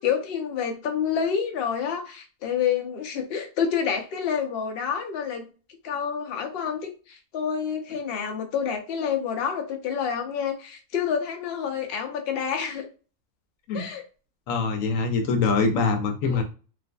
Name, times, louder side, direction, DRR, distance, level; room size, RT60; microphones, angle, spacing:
voice 1, 0.0-5.5 5.8-12.9 13.7-14.0 16.3-16.4, left 7 dB, 60° left, 4 dB, 0.7 m, -28 dB
voice 2, 14.5-16.4, left 4 dB, 85° left, 5 dB, 1.0 m, -24 dB
2.4 x 2.4 x 2.3 m, 0.35 s
omnidirectional pair, 1.4 m